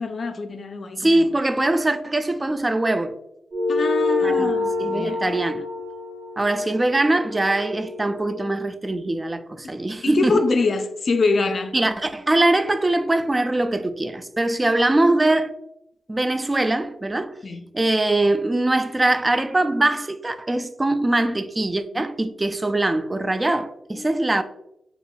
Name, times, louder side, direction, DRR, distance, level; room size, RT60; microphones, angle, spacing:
voice 1, 0.0-1.3 3.7-5.2 10.0-11.8 17.4-17.6 23.9-24.1, left 3 dB, 55° left, 0.4 m, -24 dB
voice 2, 1.0-3.2 4.2-5.7 6.4-10.4 11.7-15.5 16.1-17.3 17.7-24.4, right 2 dB, 25° right, 0.3 m, -22 dB
sound 1, 3.5-8.3, left 3 dB, 55° right, 0.8 m, -26 dB
4.1 x 2.8 x 2.2 m
cardioid pair, 65°, 0 cm